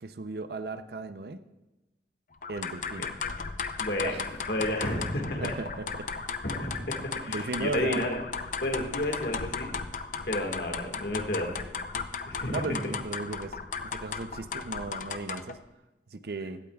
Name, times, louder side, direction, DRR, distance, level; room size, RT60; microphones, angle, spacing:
voice 1, 0.0-1.4 2.5-3.1 4.0-4.2 5.4-6.3 7.3-8.1 12.5-13.6 13.8-15.6 16.1-16.6, right 3 dB, 60° right, 11 dB, 0.6 m, -36 dB
sound 1, 2.4-15.6, left 5 dB, 45° left, 0.5 m, -36 dB
voice 2, 3.8-5.5 6.4-8.2 8.6-9.7 10.2-11.5 12.2-12.6, left 1 dB, 65° left, 2 dB, 1.7 m, -31 dB
16.5 x 12.0 x 2.3 m, 1.0 s
head